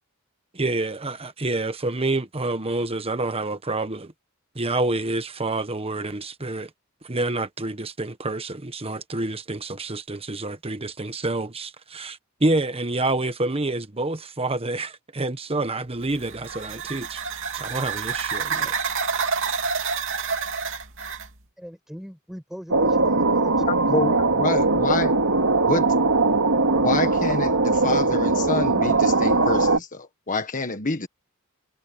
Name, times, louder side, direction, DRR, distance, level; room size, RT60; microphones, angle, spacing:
voice 1, 0.5-4.1 4.5-6.7 7.0-17.2 17.5-18.7, right 2 dB, 25° right, 1.3 m, -28 dB
sound 1, 16.0-21.3, right 5 dB, 65° right, 2.9 m, -28 dB
voice 2, 21.6-24.0, equal, ahead, 5.7 m, -40 dB
sound 2, 22.7-29.8, right 3 dB, 80° right, 2.7 m, -20 dB
voice 3, 23.7-25.1 25.6-26.0 26.7-31.1, left 3 dB, 40° left, 1.5 m, -27 dB
head